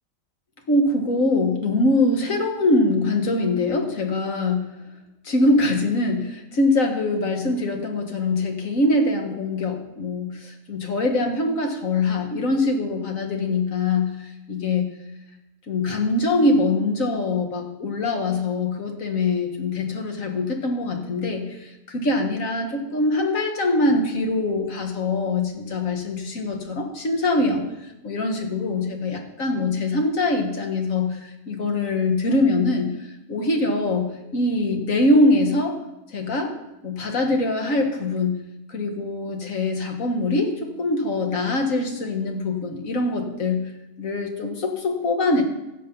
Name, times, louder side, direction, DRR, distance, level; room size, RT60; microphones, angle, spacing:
voice 1, 0.7-4.7 5.2-14.9 15.7-32.9 33.3-35.8 36.1-36.5 36.8-38.4 38.7-43.6 44.0-45.4, left 2 dB, 75° left, 3 dB, 2.0 m, -23 dB
16.0 x 6.6 x 5.4 m, 0.96 s
omnidirectional pair, 1.4 m